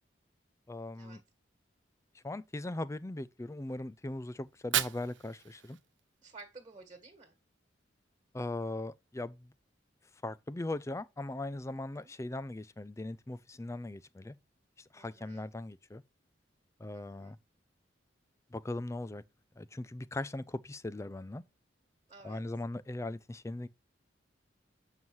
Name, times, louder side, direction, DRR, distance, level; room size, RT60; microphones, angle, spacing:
voice 1, 0.7-1.2 2.2-5.8 8.3-9.5 10.2-14.4 14.9-16.0 16.8-17.4 18.5-19.2 19.6-21.4 22.2-23.7, left 2 dB, 15° left, 0.4 m, -39 dB
Fire, 4.4-6.4, right 12 dB, 75° right, 0.6 m, -36 dB
voice 2, 6.2-7.4 11.9-12.1 14.9-15.5 16.9-17.3 22.1-22.4, right 3 dB, 25° right, 1.7 m, -53 dB
7.9 x 5.5 x 4.6 m
head